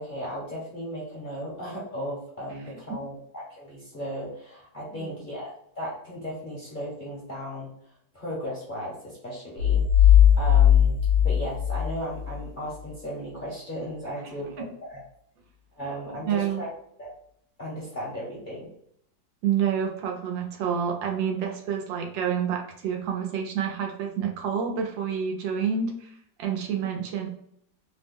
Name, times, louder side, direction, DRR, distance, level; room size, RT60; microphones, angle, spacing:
voice 1, 0.0-7.7 8.1-10.1 10.4-11.0 11.2-15.0 15.8-16.7 17.0-17.1 17.6-18.7, equal, 40° left, -6 dB, 0.7 m, -36 dB
sound 1, 9.6-12.4, left 10 dB, 65° right, 1.0 m, -18 dB
voice 2, 16.2-16.6 19.4-26.1 26.4-27.3, right 7 dB, 90° right, 2 dB, 1.4 m, -28 dB
3.3 x 2.0 x 3.5 m, 0.70 s
omnidirectional pair, 2.0 m